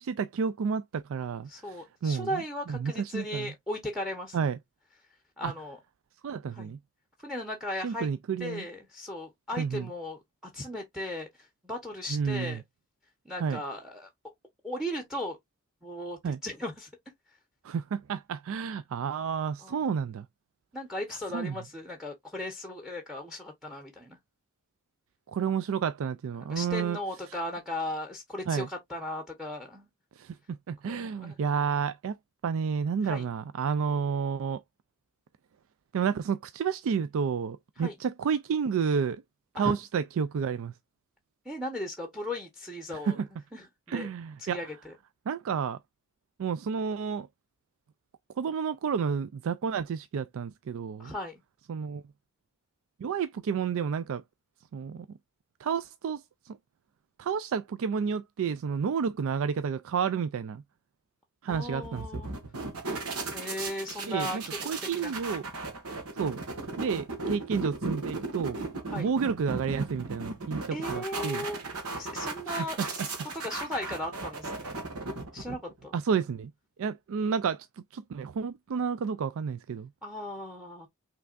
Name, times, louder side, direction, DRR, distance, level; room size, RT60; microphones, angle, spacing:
voice 1, 0.0-2.4 2.7-3.5 4.3-4.6 5.4-5.5 6.2-6.8 7.8-8.7 9.5-9.9 12.1-12.6 13.4-13.6 16.2-16.4 17.6-20.3 21.3-21.5 25.3-27.0 28.5-28.7 30.2-32.2 32.4-34.6 35.9-39.2 39.5-40.7 42.9-43.3 43.9-44.6 45.3-45.8 46.4-47.3 48.4-51.1 51.7-52.0 53.0-54.2 54.7-55.1 55.6-56.6 57.2-60.6 61.4-62.0 64.1-65.5 66.2-66.4 66.8-68.6 68.9-71.5 72.5-72.9 75.9-76.5 76.8-79.9, right 6 dB, 65° right, 0.4 m, -30 dB
voice 2, 1.5-4.4 5.4-5.8 6.5-6.7 7.2-8.1 8.4-12.6 13.2-14.1 14.6-15.4 15.8-16.9 19.6-19.8 20.7-24.2 26.5-29.9 30.8-31.4 33.0-33.2 37.8-37.9 39.5-39.7 41.4-43.2 43.5-44.1 44.4-44.9 51.0-51.4 61.5-62.3 63.3-64.4 64.8-65.1 68.9-69.1 70.7-71.6 72.0-74.7 75.3-75.9 80.0-80.9, left 1 dB, ahead, 1.0 m, -37 dB
sound 1, 61.5-75.9, right 3 dB, 85° right, 1.7 m, -36 dB
5.8 x 3.3 x 2.5 m
head